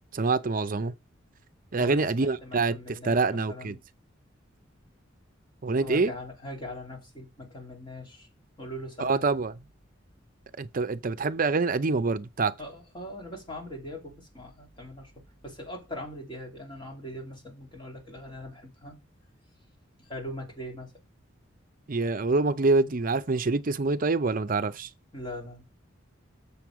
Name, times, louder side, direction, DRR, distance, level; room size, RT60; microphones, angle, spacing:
voice 1, 0.1-0.9 1.7-2.8 3.0-3.8 5.6-6.1 9.0-9.5 10.6-12.5 21.9-24.9, right 3 dB, 45° right, 0.6 m, -25 dB
voice 2, 1.8-3.8 5.8-8.3 8.6-9.2 12.6-15.1 15.4-19.0 20.0-20.9 25.1-25.6, left 1 dB, 25° left, 3.2 m, -41 dB
7.7 x 7.0 x 4.8 m
head